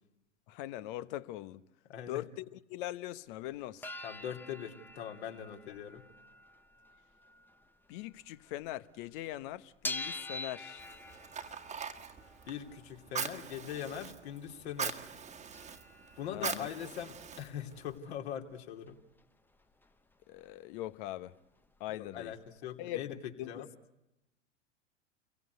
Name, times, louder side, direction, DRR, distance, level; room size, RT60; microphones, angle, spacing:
voice 1, 0.5-1.6 2.1-3.9 7.9-10.9 16.3-16.7 20.3-21.3 21.8-22.3 22.8-23.1 23.4-23.7, left 14 dB, 40° left, 1.1 m, -41 dB
voice 2, 1.9-2.2 4.0-6.0 12.5-15.0 16.2-19.0 21.9-23.6, left 9 dB, 60° left, 3.2 m, -41 dB
sound 1, 3.5-8.7 9.0-14.6 15.1-15.2 15.3-19.3 19.5-20.5 20.8-20.9 21.1-22.1 22.6-22.7, left 2 dB, 5° left, 1.0 m, -47 dB
Fire, 10.8-18.0, right 6 dB, 20° right, 1.7 m, -42 dB
29.5 x 23.0 x 8.2 m
figure-of-eight pair, 100°, 37 cm